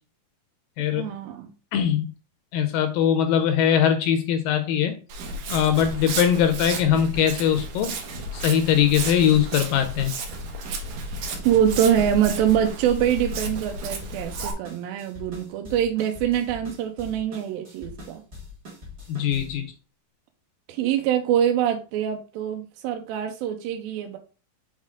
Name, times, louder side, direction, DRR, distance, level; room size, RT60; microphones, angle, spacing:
voice 1, 0.9-1.5 11.5-18.2 20.7-24.2, right 10 dB, 80° right, 4 dB, 2.3 m, -24 dB
voice 2, 1.7-2.1 2.5-4.9 5.5-8.0 8.3-10.1 19.1-19.7, left 9 dB, 80° left, 8 dB, 2.2 m, -21 dB
Walk footsteps, 5.1-14.5, right 2 dB, 65° right, 1.8 m, -33 dB
sound 1, 9.0-19.7, left 2 dB, 35° right, 1.0 m, -42 dB
6.2 x 4.1 x 3.6 m, 0.34 s
omnidirectional pair, 4.3 m